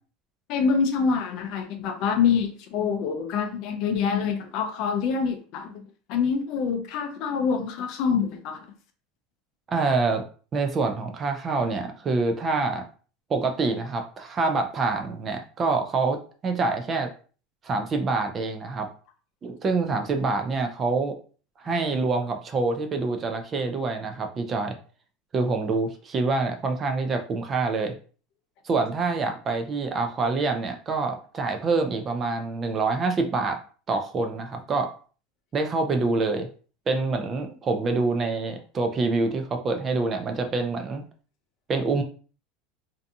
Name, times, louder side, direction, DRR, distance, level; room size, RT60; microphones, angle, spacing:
voice 1, 0.5-5.8 6.1-8.7, left 6 dB, 50° left, 7 dB, 0.4 m, -26 dB
voice 2, 9.7-10.2 10.5-12.9 13.3-17.1 17.6-18.9 19.4-21.1 21.6-24.8 25.3-28.0 28.6-33.6 33.9-34.9 35.5-36.5 36.9-41.0 41.7-42.0, right 3 dB, 25° right, 5 dB, 0.4 m, -26 dB
2.6 x 2.3 x 2.6 m, 0.39 s
supercardioid pair, 155°, 0 cm